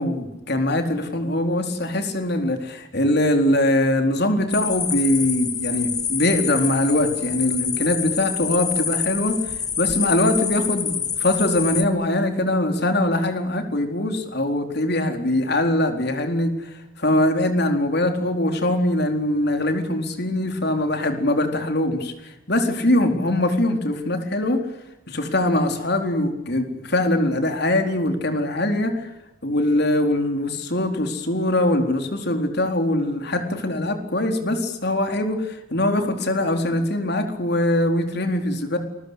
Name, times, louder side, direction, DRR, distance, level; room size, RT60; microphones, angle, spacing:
voice 1, 0.0-9.4 9.8-16.7 17.0-22.1 22.5-24.6 25.1-29.1 29.4-38.8, left 1 dB, 55° left, 5 dB, 4.2 m, -22 dB
sound 1, 4.5-11.8, left 7 dB, 20° left, 1.2 m, -27 dB
28.5 x 22.0 x 8.3 m, 0.94 s
head